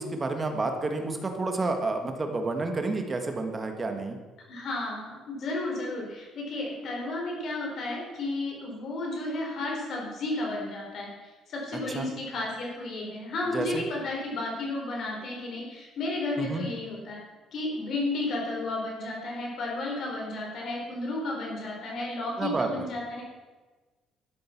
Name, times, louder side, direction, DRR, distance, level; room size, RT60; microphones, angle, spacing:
voice 1, 0.0-4.2 11.9-12.1 13.5-13.8 16.4-16.7 22.4-22.9, right 3 dB, 20° right, 5 dB, 1.4 m, -30 dB
voice 2, 4.5-11.1 11.5-17.2 17.5-23.2, left 2 dB, 50° left, -1 dB, 4.0 m, -33 dB
12.5 x 7.7 x 5.8 m, 1.3 s
cardioid pair, 145°, 0 cm